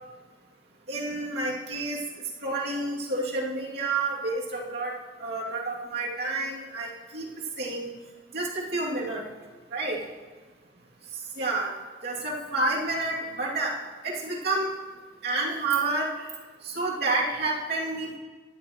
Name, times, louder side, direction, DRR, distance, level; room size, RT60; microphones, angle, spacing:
voice 1, 0.9-2.0 2.4-4.9 5.2-7.3 7.6-7.9 8.3-9.2 9.7-10.0 11.4-11.7 12.0-13.7 14.0-14.7 15.2-16.3 16.6-18.2, right 2 dB, 60° right, -4 dB, 2.7 m, -29 dB
17.0 x 11.5 x 3.1 m, 1.4 s
head